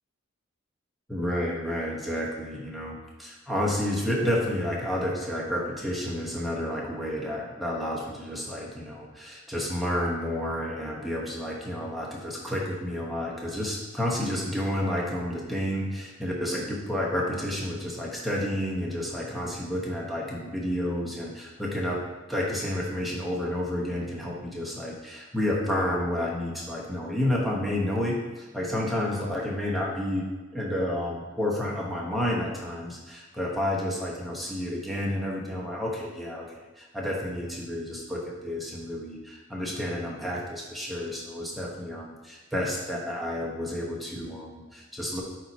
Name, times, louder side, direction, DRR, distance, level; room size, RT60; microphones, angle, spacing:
voice 1, 1.1-22.0 22.3-45.2, left 1 dB, ahead, -4 dB, 0.9 m, -30 dB
8.5 x 2.9 x 4.1 m, 1.2 s
head